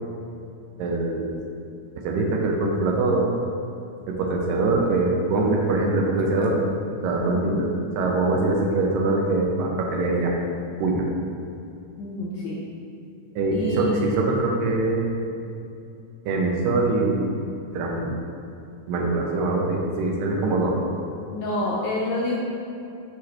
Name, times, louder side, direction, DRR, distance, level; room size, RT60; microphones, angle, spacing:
voice 1, 0.8-1.4 2.0-3.3 4.1-6.6 7.0-7.7 8.0-10.3 10.8-11.1 13.4-15.2 16.3-17.2 17.7-18.1 18.9-20.8, right 2 dB, 85° right, 0 dB, 2.3 m, -23 dB
voice 2, 7.3-7.6 12.0-12.6 13.5-14.2 21.3-22.4, left 1 dB, 80° left, -4 dB, 1.8 m, -28 dB
7.0 x 4.9 x 3.0 m, 2.6 s
omnidirectional pair, 4.0 m